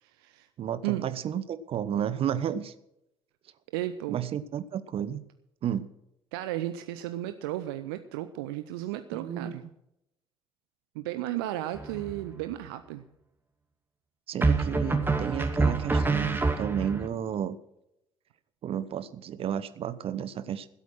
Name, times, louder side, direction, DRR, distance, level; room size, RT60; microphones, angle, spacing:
voice 1, 0.0-0.5 0.8-1.1 3.7-4.2 6.3-9.6 10.9-13.1, right 14 dB, 70° right, 10 dB, 0.7 m, -34 dB
voice 2, 0.6-2.7 4.1-5.2 5.6-5.9 9.1-9.6 14.3-17.6 18.6-20.7, right 9 dB, 45° right, 13 dB, 1.0 m, -32 dB
sound 1, 11.8-12.3 14.4-17.1, right 3 dB, 15° right, 2.3 m, -26 dB
16.5 x 8.3 x 6.2 m, 0.82 s
figure-of-eight pair, 50°, 13 cm